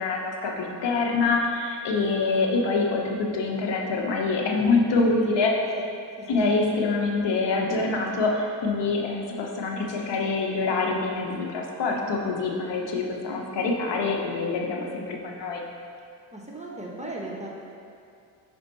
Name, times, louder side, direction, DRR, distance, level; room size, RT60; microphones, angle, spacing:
voice 1, 0.0-5.5 6.3-15.6, left 3 dB, 65° left, 0 dB, 1.0 m, -25 dB
voice 2, 16.3-17.5, right 2 dB, 15° right, -3 dB, 1.1 m, -36 dB
5.3 x 5.1 x 4.1 m, 2.4 s
cardioid pair, 80°, 46 cm